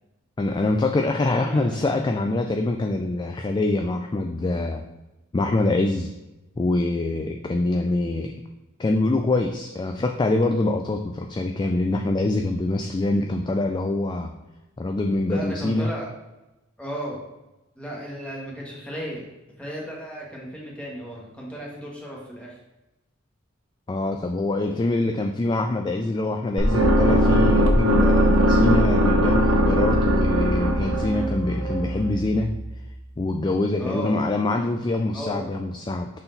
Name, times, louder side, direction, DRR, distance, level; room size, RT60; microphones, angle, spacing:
voice 1, 0.4-4.8 5.3-6.1 6.6-8.3 8.8-14.3 14.8-15.9 23.9-32.5 33.2-36.1, left 2 dB, 20° left, 4 dB, 0.3 m, -24 dB
voice 2, 1.2-1.8 15.3-16.1 16.8-17.2 17.8-19.2 19.6-22.6 33.8-34.2 35.1-35.5, equal, 5° left, -3 dB, 1.5 m, -34 dB
sound 1, 26.6-32.6, equal, 75° right, 0.9 m, -20 dB
5.8 x 4.2 x 4.0 m, 1.0 s
head